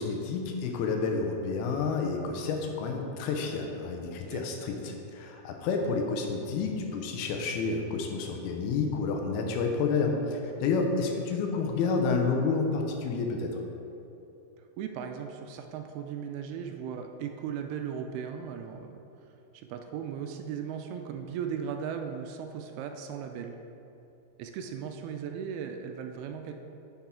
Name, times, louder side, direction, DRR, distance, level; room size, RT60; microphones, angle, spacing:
voice 1, 0.0-13.6, left 4 dB, 80° left, 2 dB, 2.6 m, -30 dB
voice 2, 14.8-19.0 19.5-23.6 24.4-26.5, right 7 dB, 80° right, 5 dB, 2.4 m, -37 dB
10.0 x 5.7 x 3.7 m, 2.8 s
omnidirectional pair, 4.6 m